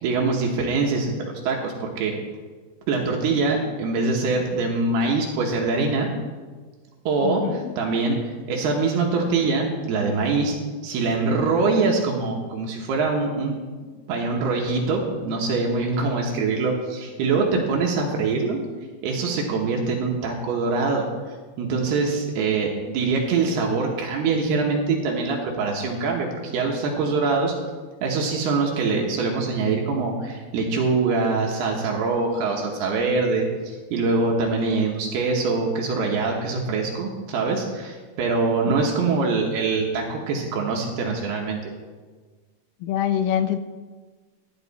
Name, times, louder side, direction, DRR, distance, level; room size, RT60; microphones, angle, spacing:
voice 1, 0.0-2.1 2.9-6.1 7.1-10.6 10.8-13.6 14.1-18.6 19.0-21.0 21.6-27.5 28.0-41.6, right 4 dB, 70° right, 0 dB, 2.6 m, -24 dB
voice 2, 7.2-7.7 38.7-38.8 42.8-43.6, left 10 dB, 85° left, 11 dB, 3.1 m, -25 dB
13.5 x 9.5 x 4.1 m, 1.4 s
omnidirectional pair, 5.8 m